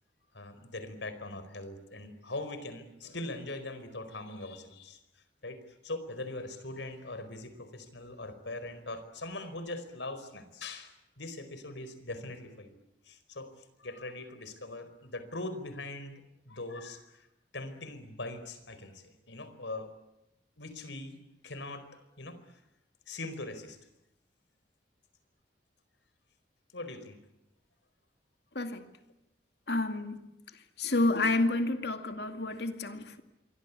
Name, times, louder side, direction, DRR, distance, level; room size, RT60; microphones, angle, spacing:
voice 1, 0.3-5.0 5.4-12.8 13.0-16.2 16.5-17.3 17.5-19.9 20.6-21.2 21.4-21.9 22.2-22.6 23.1-23.8 26.7-27.2, left 2 dB, 85° left, 4.6 m, -41 dB
voice 2, 28.5-28.9 29.7-30.3 30.8-33.2, left 2 dB, 65° left, 2.3 m, -29 dB
27.0 x 24.0 x 8.4 m
head